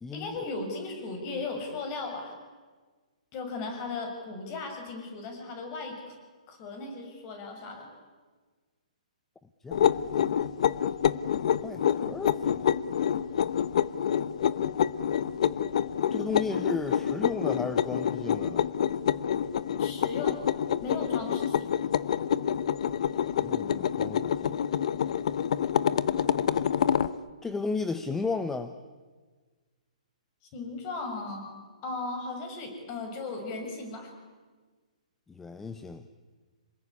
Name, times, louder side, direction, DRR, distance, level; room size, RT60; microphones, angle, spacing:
voice 1, 0.1-2.3 3.3-6.1 6.5-7.9 19.8-20.4 20.8-21.7 30.5-31.5 31.8-34.1, left 3 dB, 30° left, 4 dB, 6.8 m, -36 dB
voice 2, 9.6-10.4 11.6-12.7 16.1-18.7 23.3-24.5 27.4-28.7 35.3-36.0, left 4 dB, 5° left, 10 dB, 0.9 m, -34 dB
sound 1, 9.7-27.1, left 9 dB, 55° left, 0.9 m, -27 dB
27.0 x 20.5 x 9.9 m, 1.4 s
hypercardioid pair, 150°, 4 cm